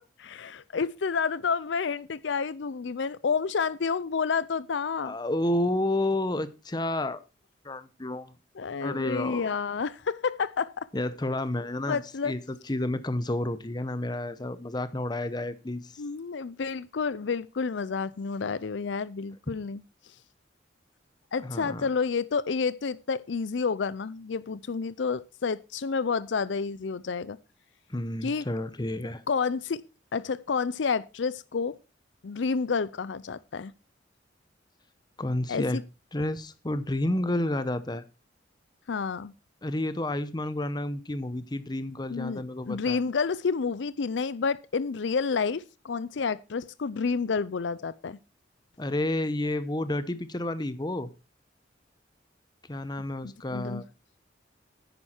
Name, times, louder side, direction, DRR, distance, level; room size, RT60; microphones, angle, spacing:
voice 1, 0.2-5.1 8.6-10.9 11.9-12.3 16.0-19.8 21.3-27.4 28.2-28.5 29.3-29.8 30.1-31.8 32.2-33.7 35.5-35.8 38.9-39.3 42.1-48.2 53.2-53.8, left 5 dB, 75° left, 0.5 m, -29 dB
voice 2, 5.0-7.2 7.6-8.3 8.8-9.5 10.9-16.0 21.4-21.9 27.9-29.2 35.2-35.8 36.1-38.0 39.6-43.0 48.8-51.1 52.7-53.9, left 1 dB, 25° left, 0.8 m, -30 dB
9.9 x 9.5 x 4.4 m
head